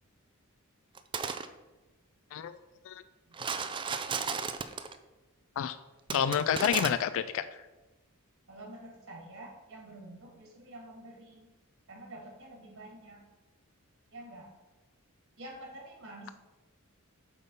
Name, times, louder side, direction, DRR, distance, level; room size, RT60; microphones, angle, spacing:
sound 1, 1.0-1.5 3.3-5.0 6.1-6.9, right 5 dB, 20° right, 0.3 m, -34 dB
voice 1, 6.1-7.5, left 8 dB, 60° left, 13 dB, 0.3 m, -29 dB
voice 2, 8.5-11.5 11.9-13.2 14.1-14.5 15.4-16.3, right 1 dB, 65° right, -1 dB, 2.2 m, -48 dB
8.1 x 3.6 x 5.5 m, 1.1 s
head